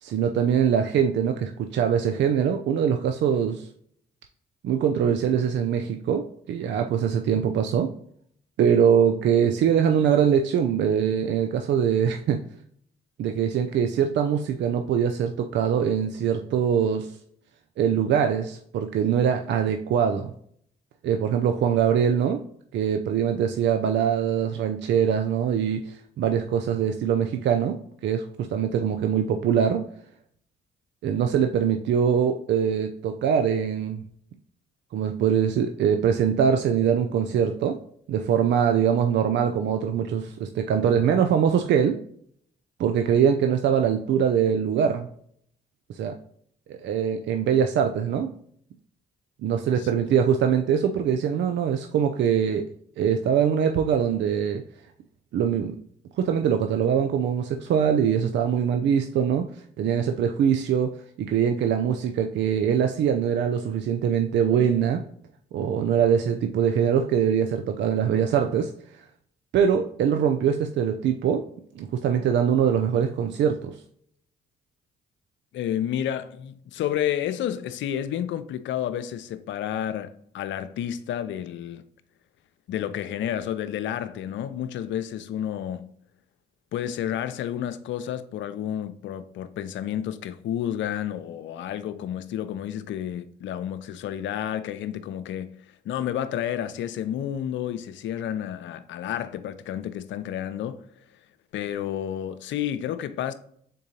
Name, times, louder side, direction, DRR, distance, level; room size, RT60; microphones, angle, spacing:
voice 1, 0.0-3.7 4.6-7.9 8.6-12.4 13.2-17.1 17.8-20.3 21.0-22.4 22.7-29.9 31.0-34.0 34.9-37.8 38.1-42.0 42.8-45.1 45.9-46.1 46.7-48.3 49.4-52.7 53.0-54.6 55.3-55.7 56.2-59.5 59.8-65.0 65.5-68.7 69.5-71.5 71.8-73.7, right 8 dB, 65° right, 0.4 m, -23 dB
voice 2, 75.5-81.8 82.7-85.9 86.7-95.5 95.8-100.9 101.5-103.3, left 10 dB, 70° left, 0.5 m, -30 dB
3.8 x 3.7 x 2.7 m
supercardioid pair, 50°, 20 cm